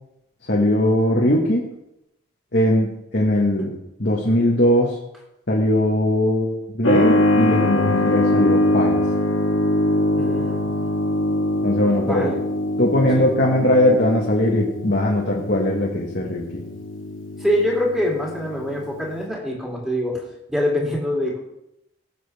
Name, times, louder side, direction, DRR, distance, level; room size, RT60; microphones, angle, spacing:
voice 1, 0.5-1.7 2.5-5.0 5.5-9.0 11.6-12.3 12.8-16.6, left 1 dB, 55° left, -2 dB, 1.5 m, -20 dB
Keyboard (musical), 6.8-19.2, left 1 dB, 80° left, 1.8 m, -23 dB
voice 2, 10.2-10.6 12.0-12.4 13.1-13.2 17.4-20.2 20.5-21.4, left 1 dB, ahead, -4 dB, 2.8 m, -24 dB
19.0 x 7.6 x 3.5 m, 0.85 s
head